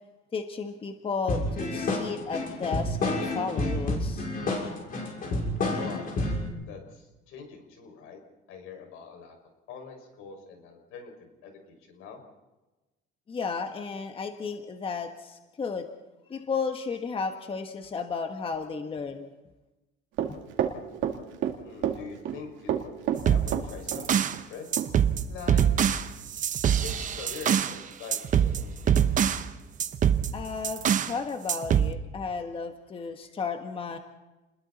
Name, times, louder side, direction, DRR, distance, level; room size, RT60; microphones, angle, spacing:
voice 1, 0.3-4.3 13.3-15.9 16.3-19.3 20.3-20.4 30.3-34.0, left 5 dB, 25° left, 6 dB, 1.4 m, -33 dB
sound 1, 1.3-6.5, left 2 dB, 45° left, 6.1 m, -29 dB
voice 2, 6.7-8.2 8.5-9.4 9.7-12.2 21.6-22.8 23.3-24.7 25.3-25.6 26.7-29.0, left 6 dB, 85° left, 3 dB, 5.9 m, -44 dB
Run, 20.2-21.5 21.8-22.4 22.7-24.0 24.3-24.4 24.8-24.9, right 10 dB, 70° right, 2.4 m, -28 dB
sound 2, 23.2-24.4 24.7-27.8 28.1-29.5 29.8-31.2 31.5-31.9, right 9 dB, 40° right, 1.0 m, -24 dB
30.0 x 21.0 x 4.2 m, 1.1 s
cardioid pair, 150°, 21 cm